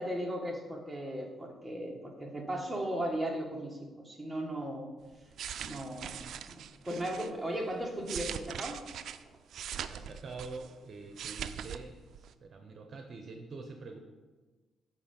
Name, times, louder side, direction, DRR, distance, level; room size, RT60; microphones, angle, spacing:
voice 1, 0.0-4.9 5.6-8.8, right 1 dB, 5° right, -1 dB, 1.6 m, -37 dB
sound 1, 5.1-7.3 7.8-10.8 11.0-11.8 12.1-12.3, right 9 dB, 70° right, 0.3 m, -41 dB
voice 2, 9.9-14.0, right 3 dB, 45° right, 4 dB, 0.8 m, -45 dB
8.5 x 4.6 x 5.3 m, 1.3 s
cardioid pair, 90°, 0 cm